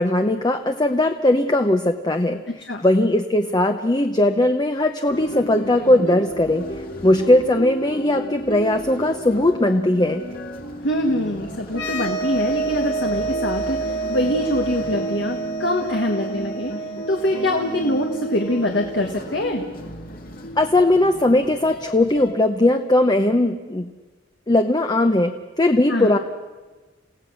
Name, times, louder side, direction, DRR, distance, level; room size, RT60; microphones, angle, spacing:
voice 1, 0.0-2.4 2.8-6.7 7.0-10.2 20.6-23.9 24.5-26.2, left 1 dB, 20° left, 6 dB, 0.7 m, -19 dB
voice 2, 2.5-2.8 10.8-16.7 17.1-19.6 25.9-26.2, left 1 dB, 65° left, 3 dB, 1.6 m, -24 dB
sound 1, 5.1-22.3, right 1 dB, 50° left, 2.1 m, -34 dB
sound 2, 11.7-19.2, right 4 dB, 85° left, 3.7 m, -29 dB
29.0 x 16.5 x 6.3 m, 1.3 s
head